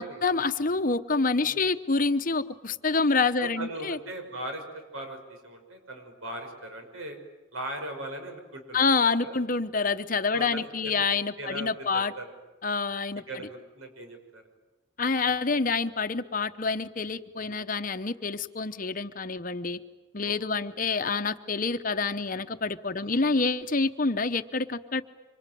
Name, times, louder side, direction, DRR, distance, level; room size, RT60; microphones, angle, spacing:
voice 1, 0.0-4.0 8.7-12.1 12.6-13.5 15.0-19.8 20.1-25.0, left 4 dB, 40° left, 10 dB, 0.9 m, -27 dB
voice 2, 3.4-7.2 7.5-9.4 10.3-11.1 11.4-12.3 13.3-14.4 17.4-17.6 20.2-20.7 23.0-23.3, right 1 dB, 90° right, 4 dB, 6.1 m, -39 dB
25.5 x 25.5 x 9.2 m, 1.1 s
head